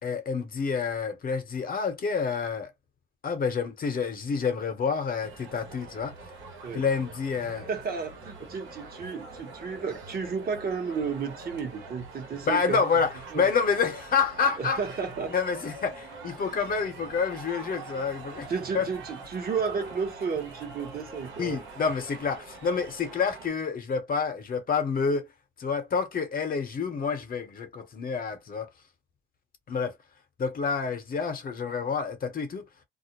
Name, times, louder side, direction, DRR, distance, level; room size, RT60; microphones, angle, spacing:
voice 1, 0.0-2.7 3.2-6.1 6.7-7.7 12.4-14.8 15.3-18.5 18.7-18.9 21.4-25.3 25.6-28.7 29.7-29.9 30.4-32.6, left 5 dB, 45° left, 0.8 m, -28 dB
sound 1, 5.2-23.5, right 3 dB, 85° right, 1.1 m, -44 dB
voice 2, 7.4-12.9 13.3-13.4 14.6-15.3 18.5-21.6, right 5 dB, 50° right, 1.0 m, -32 dB
2.4 x 2.0 x 2.9 m
cardioid pair, 90°, 20 cm